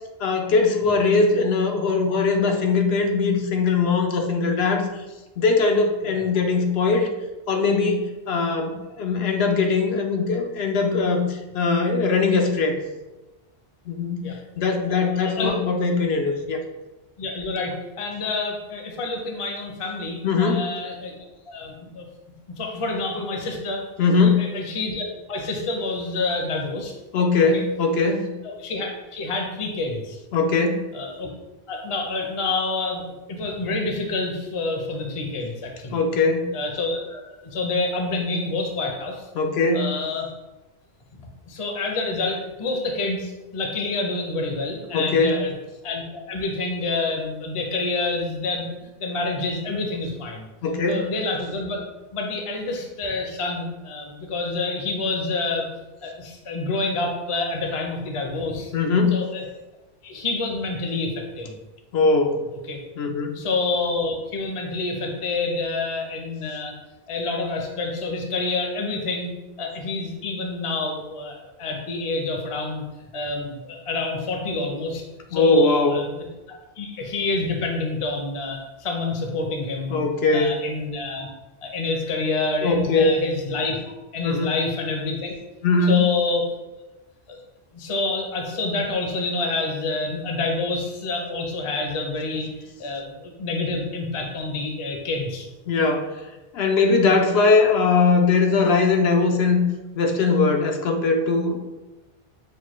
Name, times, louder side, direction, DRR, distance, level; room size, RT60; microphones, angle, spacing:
voice 1, 0.2-4.9 5.4-7.1 7.5-12.8 13.9-16.6 20.2-20.7 24.0-24.5 27.1-28.3 30.3-30.8 35.9-36.4 39.4-39.9 44.9-45.4 50.6-51.0 58.7-59.2 61.9-62.4 63.0-63.4 75.3-76.0 79.9-80.6 82.6-83.2 84.2-84.5 85.6-86.0 95.7-96.2 96.5-99.6 99.9-101.6, left 4 dB, 80° left, 3 dB, 0.8 m, -20 dB
voice 2, 14.9-15.6 17.2-22.1 22.5-23.8 24.2-26.9 27.4-27.6 28.4-30.2 30.9-31.3 31.7-36.0 36.5-39.3 39.7-40.3 41.2-45.5 45.8-50.5 50.9-51.8 52.1-55.7 56.0-58.7 59.1-59.4 60.0-61.6 62.7-62.8 63.3-66.8 67.1-69.3 69.6-72.9 73.1-75.0 75.3-76.3 76.8-80.0 80.3-81.3 81.6-83.8 84.1-85.4 85.9-86.5 87.7-92.5 92.8-95.5 97.5-97.6, left 3 dB, 40° left, 2 dB, 0.6 m, -28 dB
6.3 x 2.2 x 3.0 m, 1.1 s
omnidirectional pair, 1.1 m